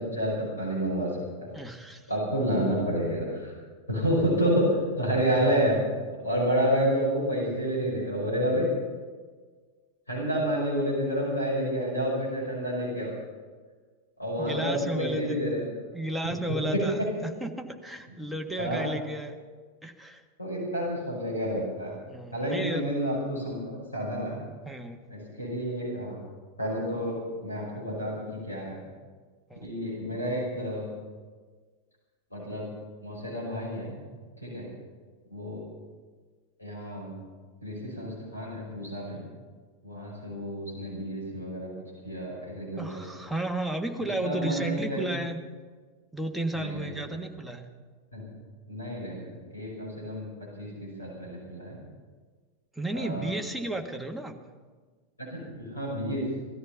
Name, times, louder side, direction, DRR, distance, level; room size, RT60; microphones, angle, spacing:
voice 1, 0.0-1.5 2.1-3.5 3.9-4.6 5.0-5.8 6.2-8.7 10.1-13.1 14.2-15.6 16.2-16.3 16.7-17.1 18.6-18.9 20.4-21.9 22.3-24.4 25.1-26.2 26.6-28.8 29.6-30.9 32.3-32.7 33.0-33.9 34.4-34.6 35.3-35.6 36.6-37.1 37.6-39.2 39.8-41.7 42.0-43.0 44.0-45.0 46.5-47.1 48.1-48.3 48.7-50.3 50.6-51.8 52.9-53.3 55.2-56.2, equal, 80° left, -5 dB, 5.7 m, -29 dB
voice 2, 1.5-2.1 14.4-15.5 15.9-19.4 19.8-20.2 22.1-22.8 24.6-25.0 29.5-29.7 42.8-45.4 46.1-47.7 52.7-54.4, right 1 dB, ahead, 2 dB, 1.6 m, -33 dB
18.0 x 13.5 x 5.7 m, 1.5 s
figure-of-eight pair, 90°, 0 cm